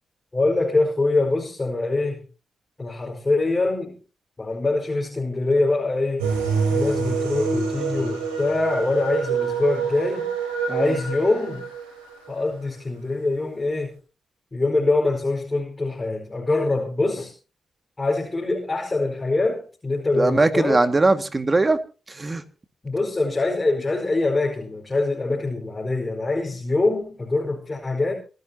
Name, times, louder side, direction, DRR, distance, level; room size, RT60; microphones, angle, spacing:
voice 1, 0.3-2.2 2.8-4.0 4.4-6.3 6.7-10.3 10.7-11.6 12.3-13.9 14.5-17.3 18.0-20.8 22.8-28.1, left 2 dB, 25° left, 4.9 m, -24 dB
sound 1, 6.2-12.3, right 5 dB, 90° right, 5.0 m, -26 dB
voice 2, 20.1-21.8 22.1-22.4, right 2 dB, 30° right, 2.1 m, -20 dB
27.5 x 11.0 x 2.9 m
hypercardioid pair, 40°, 0 cm